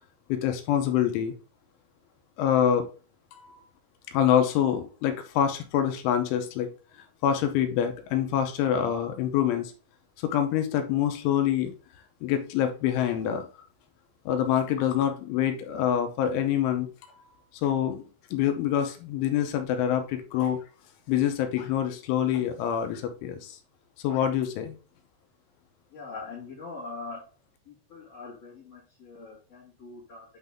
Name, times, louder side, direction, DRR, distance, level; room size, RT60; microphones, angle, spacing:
voice 1, 0.3-1.3 2.4-2.8 3.3-3.6 4.1-6.7 7.2-9.7 10.2-11.7 12.2-13.5 14.3-17.3 17.6-18.0 18.3-20.6 21.1-23.6 24.0-24.8, left 10 dB, 80° left, 6 dB, 3.0 m, -26 dB
voice 2, 25.9-27.2 27.9-30.2, left 3 dB, 50° left, -8 dB, 2.0 m, -42 dB
8.9 x 4.0 x 3.5 m, 0.36 s
omnidirectional pair, 5.9 m